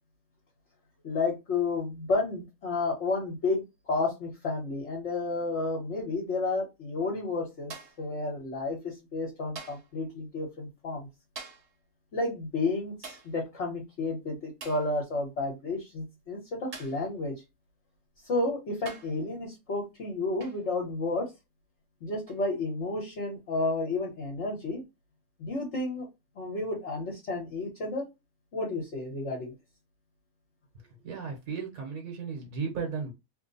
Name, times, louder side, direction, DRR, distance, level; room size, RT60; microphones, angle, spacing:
voice 1, 1.0-7.7 8.0-11.1 12.1-17.3 18.2-21.3 22.0-24.8 25.4-26.0 26.3-28.0 28.5-29.5, left 3 dB, 55° left, -2 dB, 1.3 m, -31 dB
sound 1, 7.7-8.1 9.6-10.0 11.4-11.8 13.0-13.4 14.6-14.9 16.7-17.1 18.1-18.2 18.9-19.2 20.4-20.7 22.3-22.5, right 4 dB, 50° right, 1.2 m, -45 dB
voice 2, 31.0-33.1, right 5 dB, 70° right, 1 dB, 1.4 m, -35 dB
3.2 x 2.1 x 3.9 m, 0.23 s
omnidirectional pair, 1.5 m